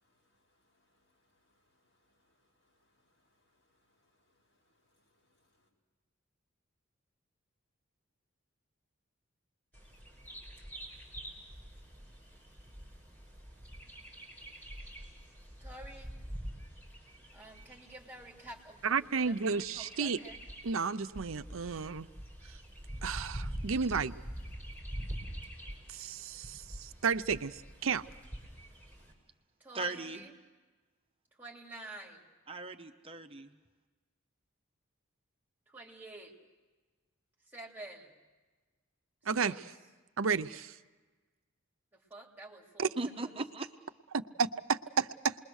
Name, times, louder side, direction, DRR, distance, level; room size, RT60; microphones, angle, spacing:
voice 1, 0.0-5.7, left 1 dB, 65° left, -1 dB, 7.0 m, -76 dB
Bird vocalization bird call bird song, 9.7-29.1, equal, 10° left, 5.2 m, -46 dB
voice 2, 15.6-16.1 17.3-20.4 29.6-30.3 31.4-32.3 35.7-36.3 37.5-38.2 39.3-39.6 41.9-43.3, right 2 dB, 10° right, 0 dB, 2.9 m, -49 dB
voice 3, 18.8-20.2 20.6-22.1 23.0-24.1 25.9-28.0 39.3-39.5 40.2-40.7 42.8-42.9 44.4-45.4, right 5 dB, 85° right, 11 dB, 0.7 m, -32 dB
voice 4, 29.7-30.2 32.5-33.5 43.0-43.6, right 2 dB, 30° right, 5 dB, 0.9 m, -38 dB
28.0 x 21.0 x 6.4 m, 1.3 s
head